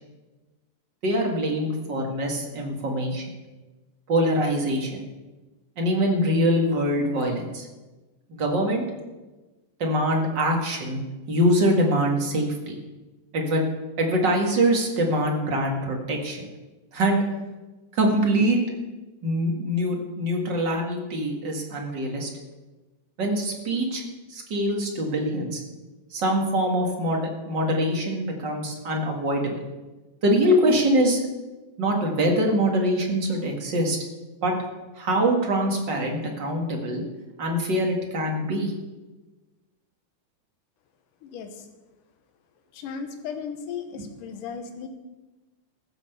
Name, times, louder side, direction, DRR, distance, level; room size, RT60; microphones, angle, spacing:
voice 1, 1.0-3.2 4.1-5.0 5.8-7.7 8.3-8.8 9.8-11.0 11.3-12.8 13.3-13.6 14.0-16.5 16.9-17.2 17.9-18.6 19.2-22.3 23.2-24.0 24.3-25.6 26.1-29.6 30.2-31.2 31.8-34.0 34.4-34.5 35.0-37.0 37.4-38.7, equal, 40° right, 1 dB, 2.1 m, -24 dB
voice 2, 41.2-41.7 42.7-44.9, left 6 dB, 85° left, 7 dB, 2.8 m, -36 dB
15.0 x 7.3 x 6.9 m, 1.2 s
omnidirectional pair, 3.7 m